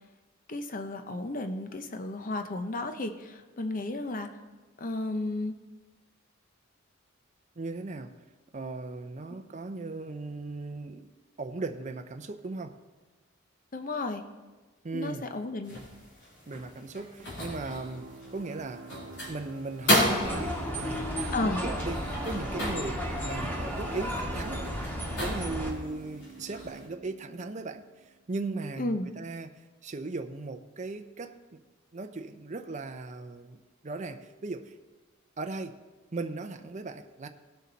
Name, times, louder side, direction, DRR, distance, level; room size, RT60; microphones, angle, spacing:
voice 1, 0.5-4.3 4.8-5.5 13.7-14.2 14.9-15.8 21.3-21.6 28.8-29.1, left 2 dB, 40° left, 7 dB, 0.7 m, -33 dB
voice 2, 7.6-8.1 8.5-11.1 11.4-12.8 14.8-15.3 16.5-19.0 19.3-21.1 21.4-24.6 25.2-27.9 28.3-31.6 31.9-34.7 35.4-35.8 36.1-37.3, right 3 dB, 35° right, 7 dB, 0.6 m, -37 dB
sound 1, 15.6-26.9, left 1 dB, 60° left, 3.4 m, -34 dB
sound 2, 17.2-28.6, right 4 dB, 70° right, 1.1 m, -49 dB
sound 3, 20.2-25.7, equal, 10° left, 1.9 m, -33 dB
17.5 x 6.8 x 4.0 m, 1.3 s
head